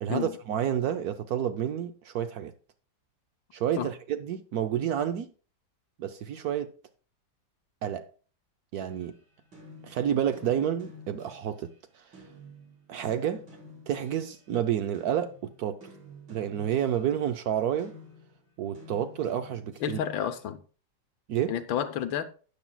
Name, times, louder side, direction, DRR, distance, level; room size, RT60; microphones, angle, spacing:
voice 1, 0.0-2.5 3.5-5.3 6.0-6.7 7.8-8.1 8.7-9.1 9.8-11.7 12.9-13.4 13.9-15.8 16.3-17.9 18.6-20.0 21.3-21.5, right 10 dB, 65° right, 1.0 m, -29 dB
sound 1, 8.9-11.7 12.1-14.5 14.9-20.2, left 1 dB, 85° right, 5.2 m, -51 dB
voice 2, 19.8-20.6 21.5-22.2, left 9 dB, 90° left, 1.6 m, -30 dB
12.0 x 9.5 x 2.2 m
omnidirectional pair, 2.0 m